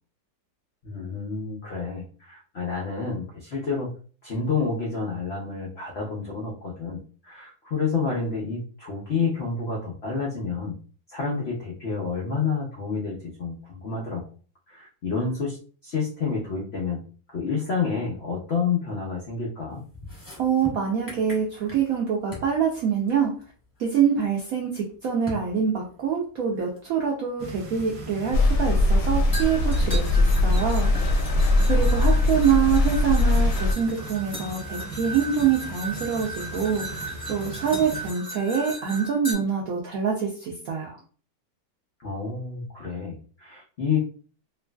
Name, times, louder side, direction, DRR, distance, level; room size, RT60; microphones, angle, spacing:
voice 1, 0.8-3.9 4.2-10.8 11.1-14.2 14.7-15.6 15.8-17.0 17.3-19.8 31.8-32.2 42.0-44.0, left 5 dB, 90° left, -3 dB, 0.5 m, -29 dB
sound 1, 19.9-22.0 22.3-22.5 23.9-24.0 25.3-25.5 26.8-26.9 29.3-39.3, equal, 20° left, 0.5 m, -37 dB
voice 2, 20.4-23.3 23.8-30.9 31.7-41.0, right 7 dB, 80° right, -1 dB, 0.8 m, -25 dB
sound 2, 27.4-38.1, right 2 dB, 65° right, 1.1 m, -39 dB
sound 3, 28.3-33.7, left 2 dB, 75° left, 1.0 m, -21 dB
3.0 x 2.5 x 2.2 m, 0.40 s
omnidirectional pair, 2.0 m